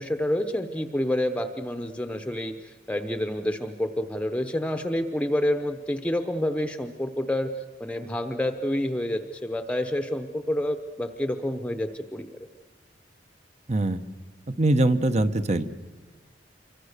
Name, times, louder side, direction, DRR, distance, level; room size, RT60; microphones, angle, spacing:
voice 1, 0.0-12.5, left 1 dB, 5° left, 8 dB, 0.9 m, -28 dB
voice 2, 13.7-14.0 14.5-15.6, right 2 dB, 40° right, 11 dB, 1.0 m, -22 dB
27.0 x 24.0 x 6.7 m, 1.4 s
head